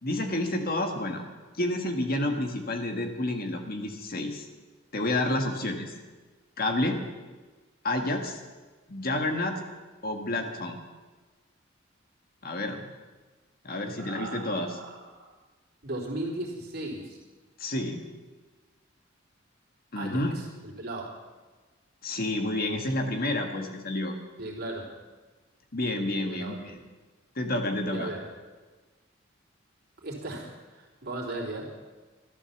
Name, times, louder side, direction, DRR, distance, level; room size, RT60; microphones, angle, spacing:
voice 1, 0.0-1.2 1.6-4.4 4.9-5.9 6.6-7.0 7.8-8.4 8.9-9.6 10.0-10.8 12.4-12.8 13.6-14.7 17.6-18.0 19.9-20.3 22.0-24.1 25.7-26.7 27.3-28.1, left 1 dB, 50° left, 4 dB, 1.7 m, -29 dB
voice 2, 14.0-15.3 15.8-17.2 20.0-21.2 24.4-24.9 26.2-26.8 27.9-28.3 30.0-31.7, right 2 dB, 55° right, -2 dB, 3.5 m, -37 dB
13.0 x 12.5 x 7.2 m, 1.3 s
head